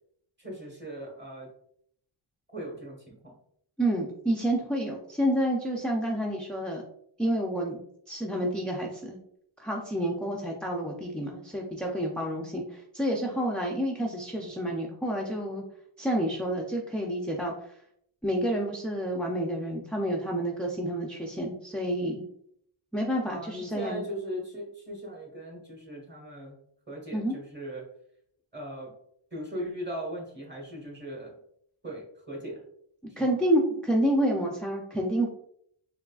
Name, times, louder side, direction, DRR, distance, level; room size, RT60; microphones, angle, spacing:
voice 1, 0.4-1.5 2.5-3.2 23.3-26.6 26.9-27.9 28.5-28.9 29.3-31.3 31.8-32.6 33.1-33.3, equal, 20° right, -1 dB, 1.3 m, -38 dB
voice 2, 3.8-6.8 7.2-7.8 8.1-9.2 9.6-15.6 16.0-17.7 18.2-22.2 22.9-24.0 27.1-27.3 33.2-35.3, right 1 dB, ahead, -2 dB, 0.3 m, -29 dB
3.6 x 3.2 x 2.3 m, 0.68 s
wide cardioid pair, 115°, 49 cm